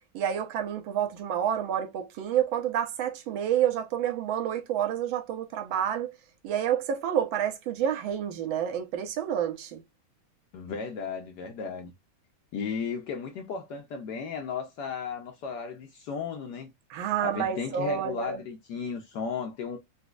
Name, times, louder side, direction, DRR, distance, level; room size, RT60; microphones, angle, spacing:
voice 1, 0.1-6.1 6.4-9.8 16.9-18.4, right 9 dB, 70° right, 1.4 m, -29 dB
voice 2, 10.5-11.9 12.5-16.7 17.2-19.8, left 6 dB, 75° left, 0.9 m, -35 dB
4.1 x 2.2 x 2.3 m
omnidirectional pair, 2.4 m